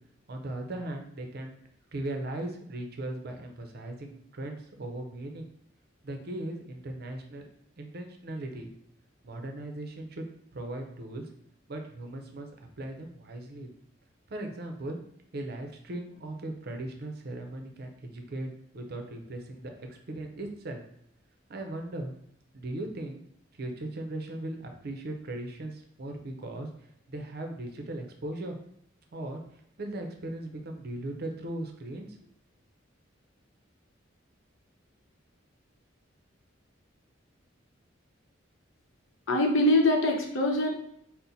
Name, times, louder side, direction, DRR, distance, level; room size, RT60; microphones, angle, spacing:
voice 1, 0.3-1.6 1.9-5.5 6.0-7.4 7.8-8.7 9.2-11.3 11.7-13.7 14.3-15.0 15.3-18.5 18.7-20.8 21.5-22.1 22.5-23.2 23.6-26.7 27.1-28.6 29.1-29.4 29.8-32.2, right 1 dB, 55° right, 4 dB, 0.6 m, -38 dB
voice 2, 39.3-40.7, left 1 dB, 80° left, 1 dB, 0.8 m, -23 dB
4.2 x 2.1 x 4.0 m, 0.71 s
head